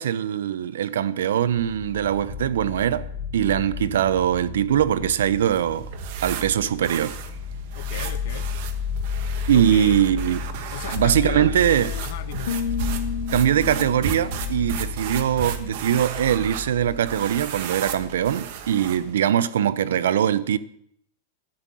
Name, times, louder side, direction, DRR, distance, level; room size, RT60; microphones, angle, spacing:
voice 1, 0.0-3.0 3.3-5.9 6.2-7.2 9.5-10.4 10.9-11.9 13.3-20.6, right 10 dB, 85° right, 0.7 m, -22 dB
sound 1, 1.2-18.6, left 5 dB, 35° left, 4.8 m, -33 dB
sound 2, 5.4-19.2, right 8 dB, 45° right, 1.2 m, -35 dB
voice 2, 7.7-8.5 9.5-10.0 10.7-11.5 12.0-12.6, left 14 dB, 55° left, 0.5 m, -36 dB
sound 3, 11.0-12.0 12.4-15.3, left 7 dB, 85° left, 0.9 m, -33 dB
11.5 x 8.4 x 7.7 m
supercardioid pair, 175°, 0 cm